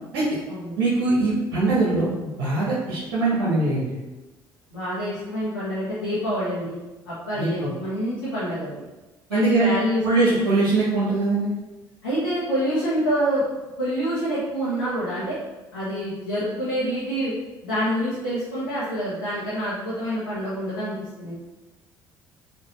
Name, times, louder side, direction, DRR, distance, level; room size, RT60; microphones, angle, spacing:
voice 1, 0.8-2.1 2.4-4.0 7.3-7.7 9.3-9.7 10.0-11.5, right 3 dB, 70° right, -8 dB, 1.0 m, -22 dB
voice 2, 4.7-6.7 7.0-8.8 9.3-10.0 12.0-13.4 13.8-15.4 15.7-17.3 17.6-21.3, equal, 85° left, -12 dB, 1.0 m, -27 dB
4.3 x 2.7 x 3.1 m, 1.1 s
figure-of-eight pair, 55°, 12 cm